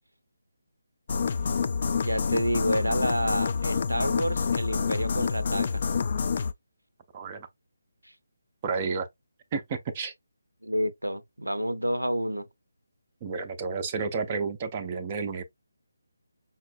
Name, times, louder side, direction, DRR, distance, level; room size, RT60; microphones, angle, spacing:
sound 1, 1.1-6.5, left 5 dB, 40° left, 0.3 m, -27 dB
voice 1, 1.9-5.8 10.6-12.5, equal, 85° right, 0.5 m, -29 dB
voice 2, 7.1-7.5 8.6-9.1 9.5-10.1 13.2-15.4, right 5 dB, 25° right, 0.5 m, -31 dB
5.4 x 2.1 x 2.4 m
figure-of-eight pair, 150°, 0 cm